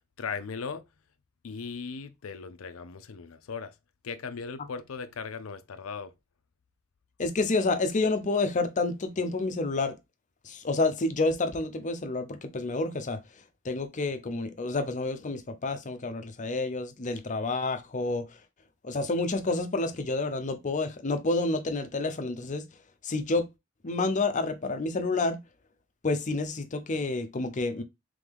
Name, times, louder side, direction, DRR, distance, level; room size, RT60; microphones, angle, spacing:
voice 1, 0.2-0.8 1.4-3.7 4.0-6.1, left 5 dB, 85° left, 0.5 m, -38 dB
voice 2, 7.2-10.0 10.4-13.2 13.6-18.4 18.8-22.7 23.0-23.5 23.8-25.4 26.0-27.8, left 3 dB, 35° left, 0.6 m, -29 dB
3.6 x 3.4 x 3.4 m
head